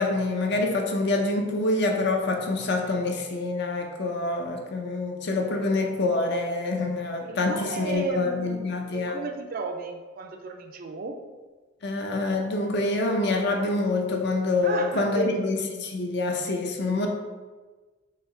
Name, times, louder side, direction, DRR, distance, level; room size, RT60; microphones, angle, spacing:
voice 1, 0.0-9.2 11.8-17.1, left 2 dB, 55° left, 3 dB, 0.6 m, -26 dB
voice 2, 7.2-8.7 8.9-11.2 14.6-15.4, right 3 dB, 45° right, 5 dB, 0.4 m, -33 dB
4.5 x 2.9 x 3.7 m, 1.3 s
head